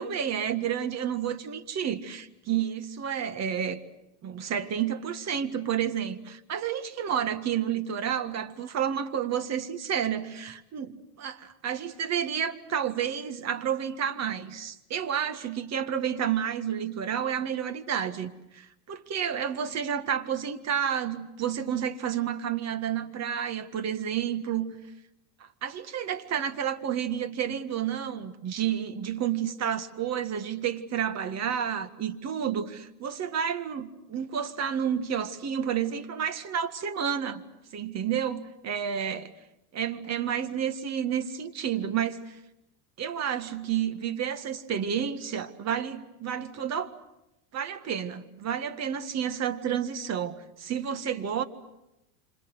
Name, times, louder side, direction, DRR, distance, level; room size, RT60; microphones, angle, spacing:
voice 1, 0.0-3.8 4.2-24.7 25.4-37.4 37.7-39.3 39.7-42.4 43.0-47.0 47.5-51.4, right 8 dB, 35° right, 1.8 m, -30 dB
28.0 x 26.0 x 8.0 m
supercardioid pair, 130°, 44 cm